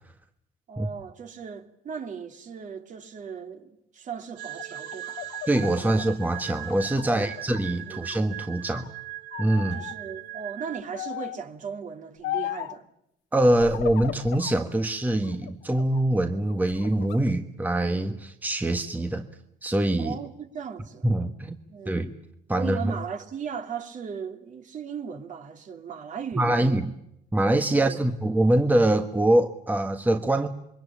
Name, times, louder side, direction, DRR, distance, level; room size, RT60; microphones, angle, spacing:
voice 1, 0.7-5.2 5.8-6.0 7.1-7.3 7.8-8.0 9.7-12.8 20.0-21.1 21.7-22.0 22.5-26.9 27.7-28.0, right 6 dB, 50° right, 3.0 m, -37 dB
sound 1, 4.4-7.7 8.0-8.9 9.3-10.0 10.9-11.5 12.2-12.8 13.5-14.6 15.1-16.0 16.5-17.2, left 14 dB, 80° left, 1.1 m, -37 dB
sound 2, 4.4-10.8, right 15 dB, 85° right, 2.2 m, -39 dB
voice 2, 5.5-8.9 9.4-9.8 13.3-19.3 19.6-20.2 21.0-21.6 21.8-22.1 22.5-22.8 26.4-26.9 27.3-30.5, right 1 dB, 10° right, 1.4 m, -24 dB
27.5 x 23.0 x 8.7 m
cardioid pair, 110°, 17 cm